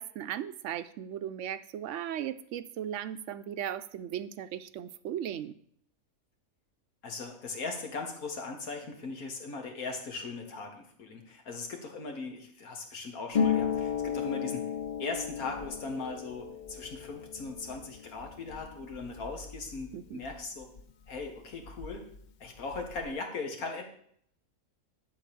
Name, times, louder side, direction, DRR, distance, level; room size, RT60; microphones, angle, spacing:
voice 1, 0.0-5.5 19.9-20.2, right 10 dB, 70° right, 12 dB, 0.8 m, -37 dB
voice 2, 7.0-14.7 15.0-20.7 21.1-22.1 22.4-23.8, left 3 dB, 90° left, 3 dB, 2.0 m, -39 dB
Harp, 13.3-20.8 21.1-22.2 22.4-23.1, left 7 dB, 50° left, 0.5 m, -35 dB
11.5 x 4.0 x 6.9 m, 0.65 s
omnidirectional pair, 1.5 m